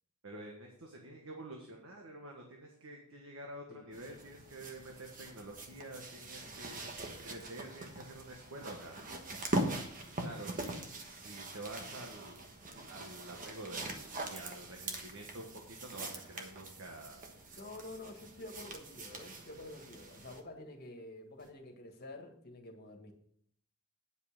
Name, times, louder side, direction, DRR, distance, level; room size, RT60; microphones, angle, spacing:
voice 1, 0.2-8.9 10.2-12.4 12.9-17.2, right 1 dB, 65° right, 1 dB, 1.4 m, -48 dB
sound 1, 3.9-20.4 21.4-21.5, right 2 dB, 40° right, 1.2 m, -42 dB
voice 2, 17.5-23.1, left 2 dB, 45° left, 3 dB, 1.7 m, -49 dB
9.7 x 5.5 x 6.4 m, 0.67 s
head